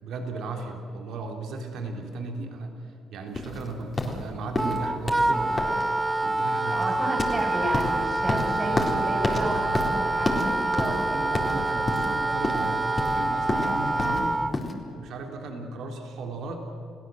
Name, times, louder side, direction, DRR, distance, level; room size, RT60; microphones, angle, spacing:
voice 1, 0.0-5.8 6.2-6.9 8.4-8.9 9.4-10.2 11.1-14.4 14.9-16.7, right 3 dB, 80° right, 3 dB, 3.7 m, -36 dB
sound 1, 3.3-14.7, left 2 dB, 25° left, 3.9 m, -31 dB
Wind instrument woodwind instrument, 4.6-14.5, right 2 dB, 15° right, 1.3 m, -26 dB
voice 2, 6.8-11.3, right 1 dB, 35° right, 0 dB, 7.2 m, -32 dB
29.5 x 17.0 x 7.8 m, 2.6 s
cardioid pair, 90°, 0 cm